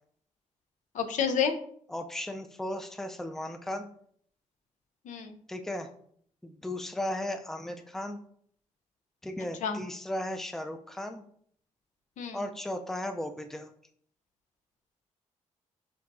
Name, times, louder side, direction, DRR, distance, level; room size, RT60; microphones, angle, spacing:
voice 1, 0.9-1.6 5.1-5.4 9.6-9.8 12.2-12.4, left 7 dB, 75° left, 7 dB, 0.5 m, -29 dB
voice 2, 1.9-3.9 5.5-5.9 6.4-8.2 9.2-11.2 12.3-13.7, left 1 dB, 5° left, 6 dB, 0.4 m, -36 dB
6.7 x 2.7 x 2.6 m, 0.62 s
cardioid pair, 90°, 13 cm